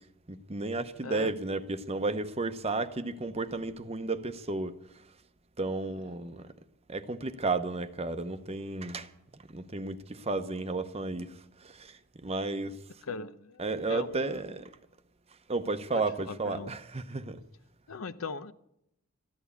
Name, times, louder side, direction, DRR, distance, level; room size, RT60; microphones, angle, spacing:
voice 1, 0.3-4.7 5.6-6.5 6.9-9.1 9.5-11.3 11.7-11.9 12.2-12.8 13.6-14.7 15.5-17.4, right 3 dB, 30° right, 0.8 m, -33 dB
voice 2, 13.0-13.6 13.9-14.4 15.9-16.0 16.3-16.7 17.9-18.5, left 4 dB, 70° left, 0.7 m, -39 dB
14.0 x 11.0 x 8.3 m
head